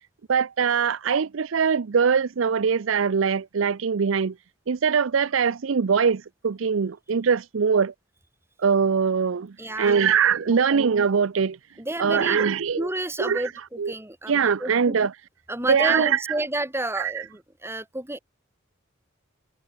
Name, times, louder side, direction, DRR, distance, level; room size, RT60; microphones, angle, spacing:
voice 1, 0.3-4.3 4.7-7.9 8.6-11.6 12.0-12.9 13.2-13.5 13.8-13.9 14.3-15.1 15.7-16.2 17.0-17.1, right 6 dB, 75° right, 0.5 m, -22 dB
voice 2, 9.6-10.0 10.4-10.8 11.8-12.5 12.8-14.3 14.6-15.0 15.5-18.2, right 1 dB, 10° right, 1.9 m, -30 dB
head